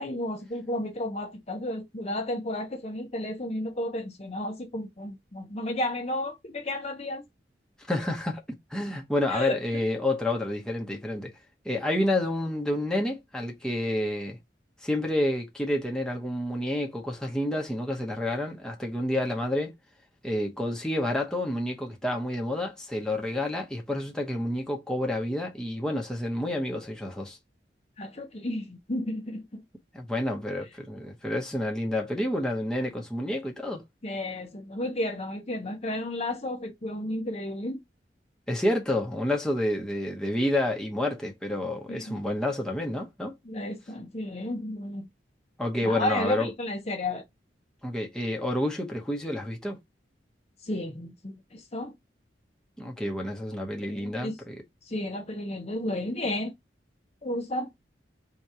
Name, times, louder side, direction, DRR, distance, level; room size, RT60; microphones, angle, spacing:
voice 1, 0.0-7.2 9.3-9.6 28.0-29.6 34.0-37.8 41.9-42.2 43.4-45.1 45.8-47.2 50.6-51.9 53.8-54.4 54.8-56.5 57.2-57.7, left 1 dB, 35° left, 0.8 m, -32 dB
voice 2, 7.9-11.3 11.6-14.4 14.8-19.7 20.2-27.4 29.9-33.8 38.5-43.3 45.6-46.5 47.8-49.8 52.8-54.6, left 1 dB, 5° left, 0.9 m, -29 dB
3.8 x 2.9 x 4.7 m
head